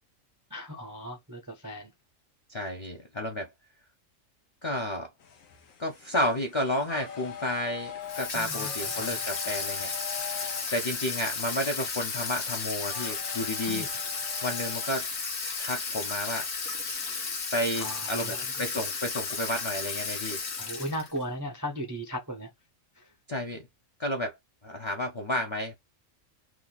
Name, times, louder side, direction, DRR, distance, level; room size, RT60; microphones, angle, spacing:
voice 1, 0.5-1.9 8.3-8.7 9.0-9.2 13.6-13.9 17.8-18.5 20.6-22.5 23.0-23.1, equal, 30° right, 0.3 m, -37 dB
voice 2, 2.5-3.5 4.6-5.1 5.8-10.2 10.7-13.8 14.4-15.1 15.6-16.5 17.5-20.4 23.3-23.7 24.0-24.4 24.6-25.7, left 1 dB, 35° left, 0.5 m, -31 dB
sound 1, 5.2-15.2, left 8 dB, 85° left, 1.2 m, -43 dB
Water tap faucet / Sink (filling or washing), 8.1-21.2, left 4 dB, 60° left, 1.1 m, -34 dB
3.1 x 2.3 x 3.8 m
omnidirectional pair, 1.4 m